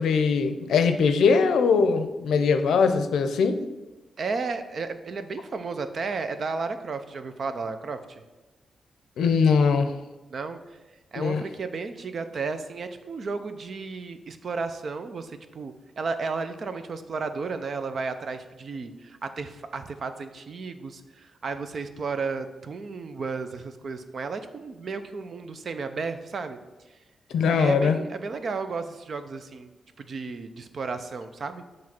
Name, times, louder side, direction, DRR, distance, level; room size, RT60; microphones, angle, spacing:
voice 1, 0.0-3.6 9.2-9.9 11.2-11.4 27.3-28.0, left 5 dB, 90° left, 9 dB, 0.5 m, -21 dB
voice 2, 4.2-8.2 10.3-10.8 11.1-26.6 27.5-29.7 30.0-31.6, right 4 dB, 55° right, 9 dB, 0.6 m, -33 dB
7.3 x 3.2 x 5.9 m, 1.1 s
cardioid pair, 85°, 0 cm